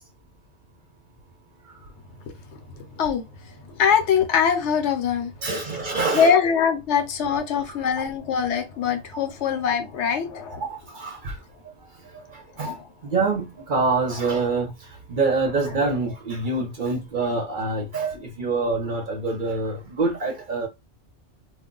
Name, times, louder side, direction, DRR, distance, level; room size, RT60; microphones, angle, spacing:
voice 1, 3.8-5.3 6.1-10.6 12.6-12.8, left 7 dB, 70° left, 0.9 m, -22 dB
voice 2, 5.4-6.3 7.7-7.8 10.5-11.4 11.6-11.7 12.0-12.8 13.0-20.7, right 3 dB, 50° right, 0.7 m, -26 dB
2.3 x 2.2 x 3.7 m
omnidirectional pair, 1.3 m